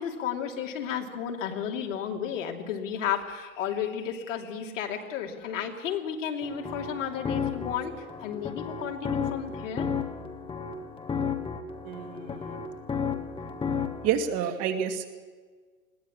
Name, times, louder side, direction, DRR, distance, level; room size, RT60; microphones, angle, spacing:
voice 1, 0.0-9.9, left 8 dB, 60° left, 2 dB, 3.0 m, -33 dB
sound 1, 6.4-14.1, left 6 dB, 10° left, 1.6 m, -33 dB
voice 2, 11.9-12.6 14.0-15.1, right 8 dB, 35° right, 5 dB, 2.4 m, -29 dB
21.0 x 17.5 x 7.3 m, 1.5 s
hypercardioid pair, 110°, 42 cm